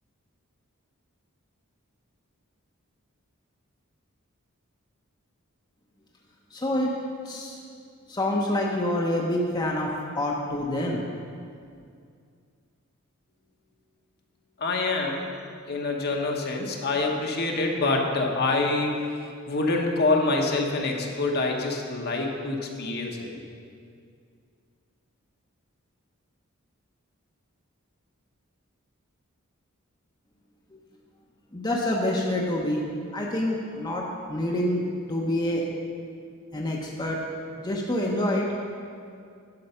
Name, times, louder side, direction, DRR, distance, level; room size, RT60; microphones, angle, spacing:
voice 1, 6.5-6.9 7.3-7.5 8.1-9.9 10.2-11.0 31.5-32.8 33.1-34.0 34.3-34.8 35.1-35.6 36.5-37.2 37.6-38.5, left 1 dB, 20° left, -2 dB, 0.8 m, -26 dB
voice 2, 14.6-15.2 15.7-23.3, left 3 dB, 50° left, 1 dB, 1.0 m, -26 dB
10.5 x 5.4 x 5.6 m, 2.3 s
head